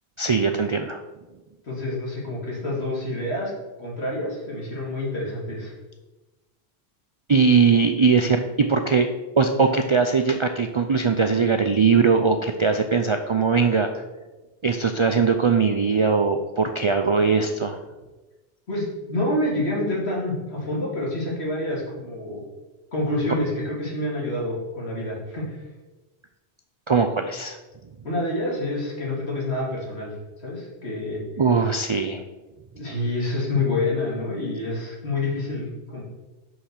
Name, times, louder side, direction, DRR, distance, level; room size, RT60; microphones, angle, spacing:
voice 1, 0.2-1.0 7.3-9.1 9.4-13.9 14.6-17.8 26.9-27.6 31.4-32.2, right 5 dB, 50° right, 6 dB, 0.3 m, -20 dB
voice 2, 1.6-3.5 3.8-5.7 18.7-22.4 22.9-25.6 28.0-31.2 32.7-36.0, left 2 dB, 75° left, -4 dB, 2.5 m, -27 dB
5.7 x 5.6 x 6.5 m, 1.1 s
omnidirectional pair, 1.1 m